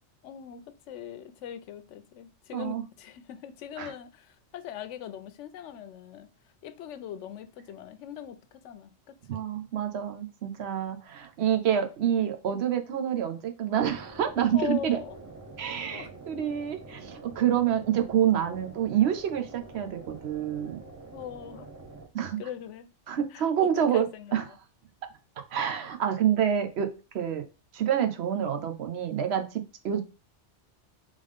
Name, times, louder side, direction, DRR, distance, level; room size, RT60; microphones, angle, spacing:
voice 1, 0.2-6.3 6.6-9.5 14.5-15.2 15.8-16.1 21.1-21.7 22.4-22.9 23.3-24.6, left 10 dB, 80° left, 0.9 m, -41 dB
voice 2, 9.3-15.0 15.6-20.8 22.1-22.4 23.1-24.4 25.5-26.9 27.1-27.4 27.7-30.0, right 9 dB, 70° right, 0.9 m, -27 dB
sound 1, 13.8-22.1, right 3 dB, 20° right, 0.6 m, -46 dB
3.6 x 3.5 x 3.4 m
omnidirectional pair, 1.2 m